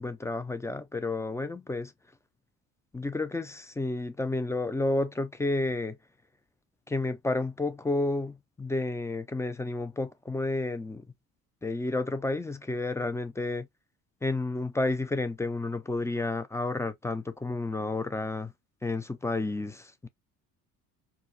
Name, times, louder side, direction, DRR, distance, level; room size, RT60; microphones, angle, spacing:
voice 1, 0.0-1.9 2.9-6.0 6.9-11.0 11.6-13.7 14.2-18.5 18.8-20.1, left 2 dB, 5° left, 0.4 m, -31 dB
4.7 x 2.1 x 2.7 m
figure-of-eight pair, 55°, 46 cm